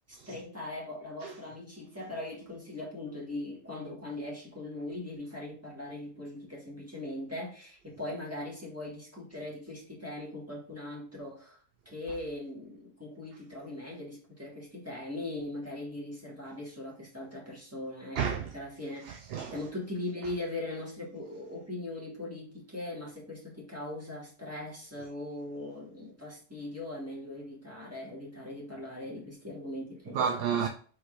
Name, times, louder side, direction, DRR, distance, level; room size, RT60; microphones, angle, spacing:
voice 1, 0.1-11.6 11.9-19.0 19.5-30.3, left 1 dB, 15° right, 1.8 m, -40 dB
voice 2, 18.1-18.5 19.0-19.6 30.1-30.7, right 7 dB, 70° right, 0.8 m, -31 dB
4.8 x 4.0 x 2.6 m
omnidirectional pair, 1.1 m